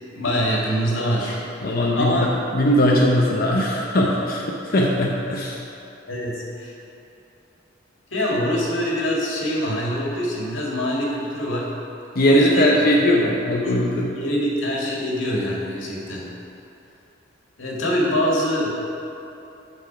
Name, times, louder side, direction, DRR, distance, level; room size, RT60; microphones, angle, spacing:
voice 1, 0.1-2.3 6.1-6.7 8.1-11.7 12.2-12.8 13.2-13.3 13.6-13.8 14.1-16.3 17.6-18.8, equal, 90° left, -3 dB, 2.0 m, -24 dB
voice 2, 1.6-5.6 12.1-14.1, equal, 50° left, -3 dB, 0.8 m, -19 dB
9.0 x 6.0 x 5.8 m, 2.9 s
head